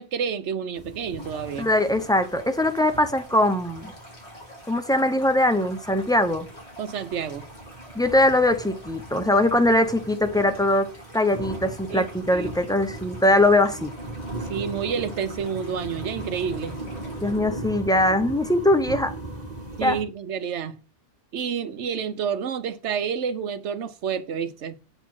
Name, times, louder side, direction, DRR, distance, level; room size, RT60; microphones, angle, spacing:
voice 1, 0.0-1.7 6.8-7.5 11.9-12.6 14.5-16.8 19.8-20.8 21.3-24.8, right 7 dB, 75° right, 1.1 m, -29 dB
sound 1, 0.7-20.0, right 2 dB, 35° right, 1.8 m, -39 dB
Stream, 1.2-17.4, equal, 65° left, 3.2 m, -47 dB
voice 2, 1.6-3.9 4.7-6.5 7.9-10.9 11.1-13.9 17.2-19.1 19.8-20.0, left 1 dB, 5° left, 0.6 m, -21 dB
8.8 x 4.2 x 5.9 m
omnidirectional pair, 1.2 m